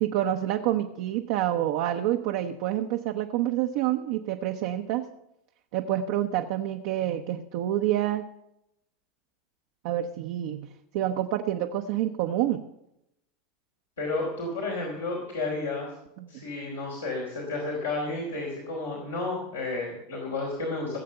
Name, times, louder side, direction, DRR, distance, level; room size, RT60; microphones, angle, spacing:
voice 1, 0.0-5.0 5.7-8.2 9.8-10.7 10.9-12.6 16.2-16.4, right 12 dB, 60° right, 4 dB, 0.7 m, -27 dB
voice 2, 14.0-15.9 16.3-21.0, left 3 dB, 80° left, -3 dB, 3.4 m, -31 dB
16.5 x 7.5 x 6.7 m, 0.83 s
figure-of-eight pair, 80°, 0 cm